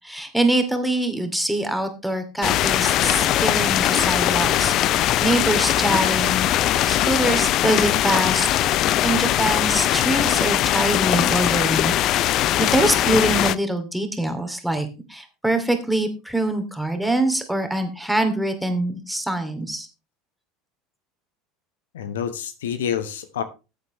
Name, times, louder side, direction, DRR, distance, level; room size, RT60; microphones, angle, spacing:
voice 1, 0.0-6.5 6.9-8.5 9.0-19.9, right 1 dB, ahead, 6 dB, 2.6 m, -24 dB
sound 1, 2.4-13.5, left 13 dB, 50° left, 0.5 m, -20 dB
voice 2, 21.9-23.4, left 8 dB, 75° left, 11 dB, 1.1 m, -28 dB
14.0 x 8.3 x 3.2 m, 0.29 s
hypercardioid pair, 75°, 0 cm